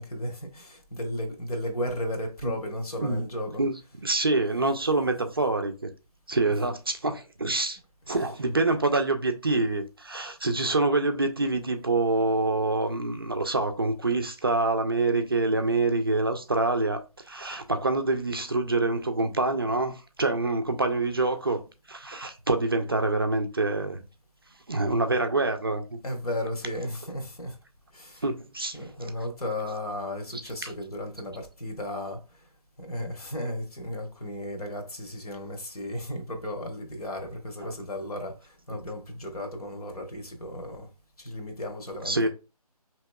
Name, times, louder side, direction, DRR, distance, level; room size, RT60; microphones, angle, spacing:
voice 1, 0.0-4.0 8.0-8.4 21.2-21.3 26.0-27.6 27.9-28.3 28.7-32.4 32.8-40.9 41.2-42.3, left 1 dB, 70° left, 1.3 m, -35 dB
voice 2, 4.0-5.9 6.3-7.8 8.1-21.6 21.9-24.0 24.7-25.8 28.2-28.8 42.1-42.3, right 2 dB, 40° right, 0.4 m, -26 dB
4.4 x 2.9 x 2.2 m
figure-of-eight pair, 165°, 20 cm